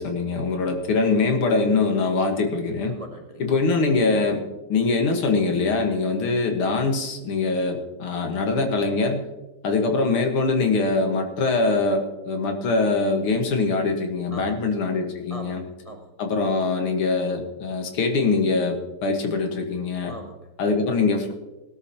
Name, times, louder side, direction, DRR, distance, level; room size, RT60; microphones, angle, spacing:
voice 1, 0.0-2.9 3.4-4.4 4.7-9.3 9.6-15.6 16.2-20.1 20.6-21.3, left 3 dB, 85° left, 4 dB, 2.4 m, -23 dB
voice 2, 2.9-3.4 14.3-14.7 15.3-16.1 20.1-20.5, right 1 dB, 45° right, 3 dB, 0.4 m, -40 dB
19.0 x 13.0 x 2.9 m, 1.1 s
omnidirectional pair, 2.3 m